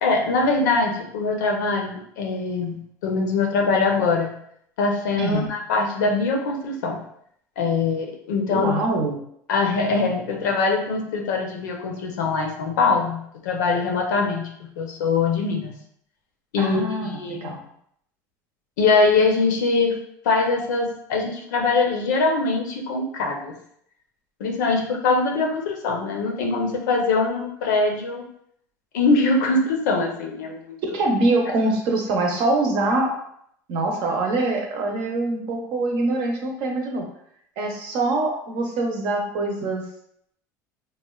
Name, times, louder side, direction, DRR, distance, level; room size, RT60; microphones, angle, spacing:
voice 1, 0.0-4.3 4.8-7.0 7.6-8.8 9.5-15.7 16.5-17.6 18.8-20.0 20.2-23.5 24.4-28.2 28.9-30.8, left 3 dB, 80° left, 1 dB, 0.6 m, -22 dB
voice 2, 5.2-5.5 8.5-9.2 16.6-17.6 30.9-33.1 33.7-37.1 37.6-39.9, right 2 dB, 60° right, 1 dB, 0.7 m, -24 dB
3.1 x 2.2 x 2.3 m, 0.69 s
hypercardioid pair, 80°, 9 cm